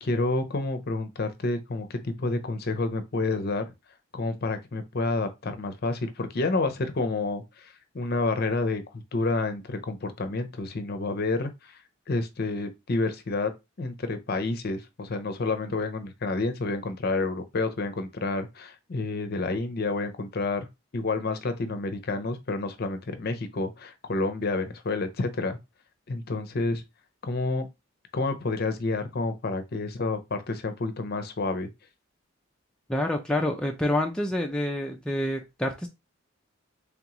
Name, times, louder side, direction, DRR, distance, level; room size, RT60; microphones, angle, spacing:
voice 1, 0.0-3.7 4.1-8.8 9.1-11.7 12.1-13.5 13.8-20.7 20.9-25.6 26.1-26.8 27.2-27.7 28.1-31.7, left 3 dB, 45° left, 0.6 m, -29 dB
voice 2, 32.9-35.9, left 1 dB, 5° left, 0.4 m, -27 dB
3.6 x 3.5 x 3.0 m
head